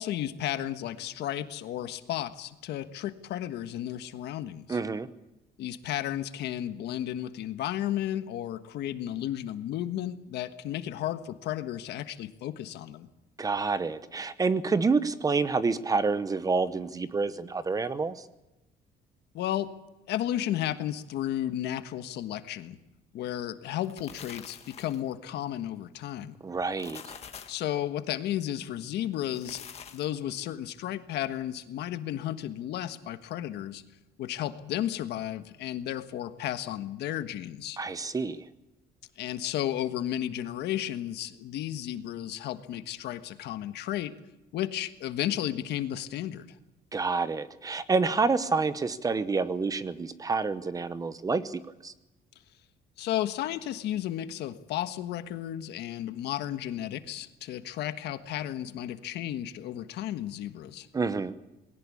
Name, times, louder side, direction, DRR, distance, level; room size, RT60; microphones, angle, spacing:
voice 1, 0.0-4.8 5.6-13.1 19.3-19.7 20.1-22.8 23.1-26.4 27.5-29.6 29.9-33.8 34.2-37.8 39.2-44.1 44.5-46.6 53.0-60.9, left 12 dB, 75° left, 10 dB, 1.4 m, -33 dB
voice 2, 4.7-5.1 13.4-18.2 26.4-27.2 37.8-38.4 46.9-51.9 60.9-61.3, right 4 dB, 20° right, 14 dB, 0.9 m, -28 dB
sound 1, 23.7-25.1 26.6-27.7 29.2-30.2, left 7 dB, 35° left, 1.7 m, -46 dB
20.5 x 18.0 x 8.5 m, 0.97 s
cardioid pair, 155°, 17 cm